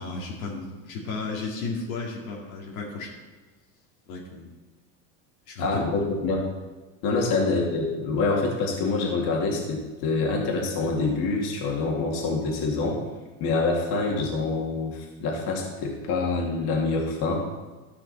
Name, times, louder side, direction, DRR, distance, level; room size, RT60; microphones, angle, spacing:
voice 1, 0.0-3.1 4.1-4.5 5.5-5.8 7.2-7.4, left 3 dB, 85° left, -3 dB, 2.4 m, -34 dB
voice 2, 5.6-6.5 7.0-13.0 13.4-17.4, left 3 dB, 65° left, -1 dB, 2.5 m, -26 dB
14.0 x 6.0 x 4.2 m, 1.3 s
supercardioid pair, 105°, 41 cm